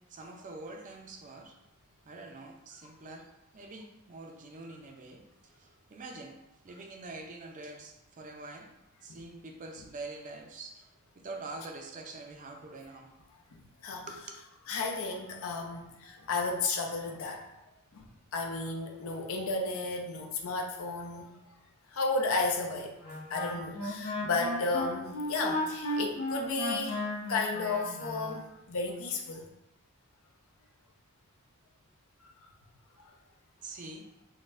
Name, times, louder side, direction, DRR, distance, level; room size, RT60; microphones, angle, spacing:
voice 1, 0.0-1.6 2.0-6.4 6.6-8.7 9.0-13.1 14.1-14.4 33.6-34.1, right 2 dB, 35° right, 3 dB, 0.4 m, -45 dB
voice 2, 13.5-14.1 14.7-17.4 17.9-18.1 18.3-21.3 21.9-22.9 23.3-27.0 27.3-29.4 33.0-33.1, left 3 dB, 70° left, 2 dB, 0.5 m, -33 dB
Wind instrument woodwind instrument, 23.0-28.4, left 1 dB, 90° left, 0.9 m, -35 dB
3.9 x 2.1 x 2.5 m, 0.92 s
head